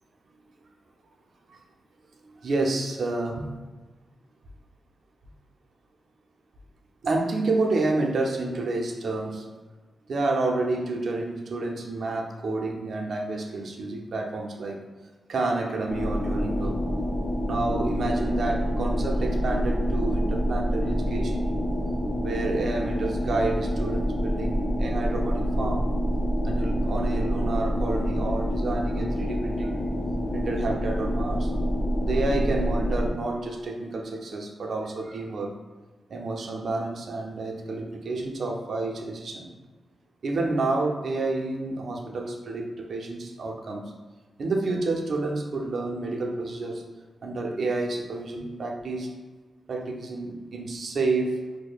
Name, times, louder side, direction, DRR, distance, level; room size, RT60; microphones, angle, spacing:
voice 1, 2.2-3.4 7.0-9.4 10.1-14.8 15.3-16.8 17.4-21.5 22.2-25.8 26.4-29.8 30.3-31.5 32.0-35.5 36.1-39.5 40.2-43.8 44.4-46.8 47.2-49.1 49.7-51.3, right 2 dB, 70° right, 1 dB, 0.5 m, -29 dB
sound 1, 15.9-33.1, equal, 55° left, 0.7 m, -27 dB
4.7 x 2.1 x 2.4 m, 1.3 s
cardioid pair, 50°, 0 cm